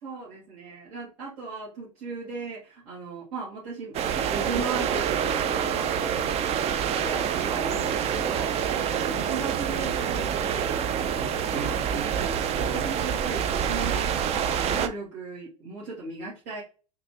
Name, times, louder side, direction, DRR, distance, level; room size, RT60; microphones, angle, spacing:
voice 1, 0.0-6.3 6.6-16.6, right 3 dB, 65° right, -7 dB, 1.6 m, -37 dB
sound 1, 3.9-14.9, right 8 dB, 35° right, 0.4 m, -27 dB
3.8 x 2.6 x 2.8 m, 0.35 s
hypercardioid pair, 85°, 17 cm